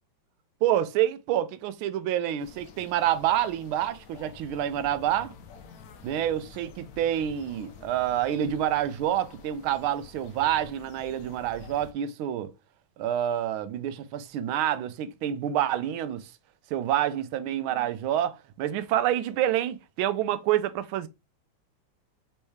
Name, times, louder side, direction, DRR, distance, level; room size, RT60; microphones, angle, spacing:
voice 1, 0.6-5.3 6.0-12.5 13.0-16.3 16.7-21.1, right 11 dB, 90° right, 1.4 m, -27 dB
sound 1, 2.4-11.9, left 6 dB, 75° left, 0.8 m, -49 dB
4.5 x 3.2 x 3.1 m
omnidirectional pair, 2.2 m